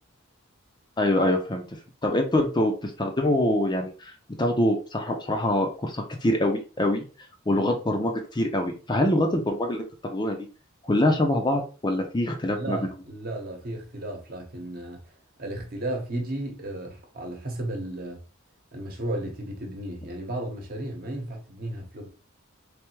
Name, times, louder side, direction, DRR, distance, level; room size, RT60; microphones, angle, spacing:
voice 1, 1.0-4.1 4.4-7.0 7.5-10.4 10.8-12.8, left 1 dB, 20° left, 0.6 m, -25 dB
voice 2, 12.5-15.0 15.4-18.2 18.7-22.1, right 1 dB, 45° right, 1.1 m, -34 dB
3.4 x 3.3 x 3.1 m
head